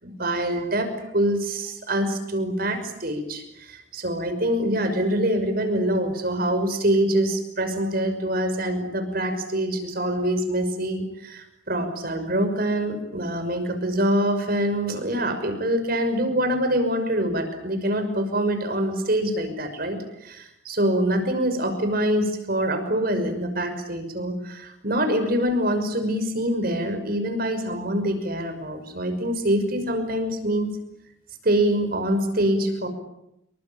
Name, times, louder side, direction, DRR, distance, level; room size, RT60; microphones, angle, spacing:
voice 1, 0.0-30.7 31.4-32.9, right 1 dB, 50° right, 8 dB, 5.9 m, -25 dB
28.0 x 24.0 x 8.9 m, 0.81 s
head